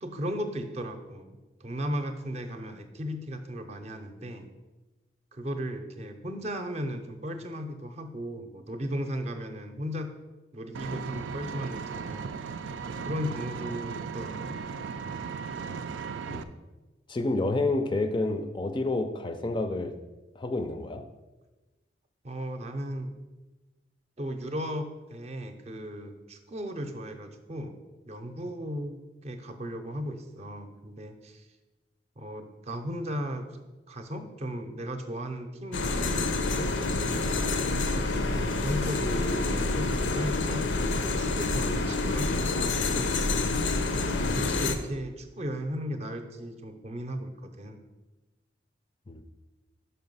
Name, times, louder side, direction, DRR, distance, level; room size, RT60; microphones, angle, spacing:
voice 1, 0.0-4.5 5.3-10.1 10.5-12.3 12.9-14.6 22.2-23.1 24.2-27.8 28.1-28.9 29.2-31.4 32.2-33.5 33.9-36.8 37.9-43.1 43.9-47.8, equal, 35° right, 7 dB, 0.6 m, -36 dB
Vehicle, 10.7-16.4, right 5 dB, 85° right, 0.4 m, -36 dB
voice 2, 17.1-20.0 20.4-21.0 49.1-49.2, left 2 dB, 25° left, 8 dB, 0.4 m, -29 dB
sound 1, 35.7-44.7, left 3 dB, 80° left, 0.6 m, -27 dB
5.6 x 5.1 x 5.4 m, 1.1 s
head